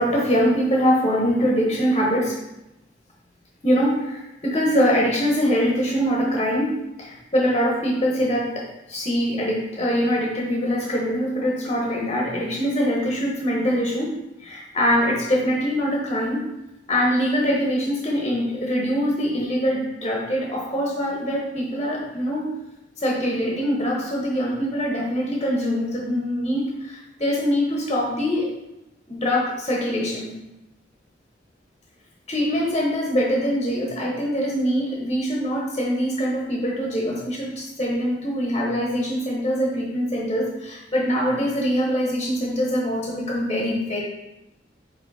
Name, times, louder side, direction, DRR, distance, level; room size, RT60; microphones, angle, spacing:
voice 1, 0.0-2.4 3.6-14.1 14.4-16.5 16.9-22.5 23.0-28.5 29.1-30.4 32.3-44.0, equal, 30° left, -2 dB, 1.1 m, -23 dB
5.9 x 4.0 x 4.1 m, 0.93 s
head